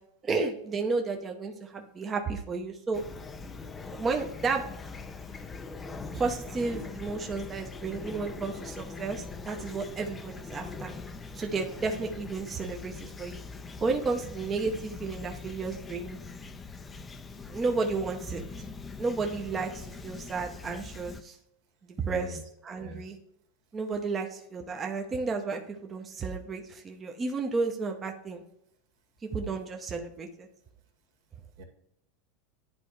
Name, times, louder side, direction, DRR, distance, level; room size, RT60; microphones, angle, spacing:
voice 1, 0.2-3.0 3.9-4.6 6.1-10.9 11.3-13.4 13.8-16.2 17.5-18.4 19.0-21.4 22.0-23.2 23.7-28.4 29.3-30.5, right 4 dB, 20° right, 3 dB, 0.8 m, -32 dB
Fowl / Chirp tweet, 2.9-21.2, left 4 dB, 15° left, 0.5 m, -42 dB
voice 2, 22.1-22.4 22.8-23.1 29.4-29.6 31.6-31.7, equal, 65° right, 3 dB, 2.1 m, -43 dB
10.5 x 4.1 x 3.1 m, 0.76 s
supercardioid pair, 140°, 0 cm